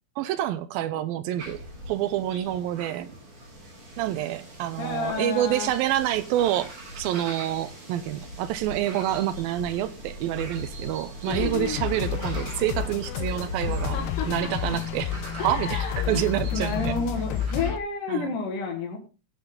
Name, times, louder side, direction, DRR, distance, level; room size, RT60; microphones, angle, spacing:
voice 1, 0.2-3.1 4.0-14.0 14.3-15.1 15.4-16.9 18.1-18.3, right 12 dB, 80° right, 2.2 m, -27 dB
sound 1, 1.4-17.7, equal, 55° right, 8.5 m, -41 dB
voice 2, 4.8-5.7 11.3-11.9 13.7-14.5 15.4-19.0, left 4 dB, 60° left, 2.8 m, -31 dB
sound 2, 11.3-17.8, left 9 dB, 85° left, 2.9 m, -30 dB
18.0 x 6.2 x 3.7 m
omnidirectional pair, 4.7 m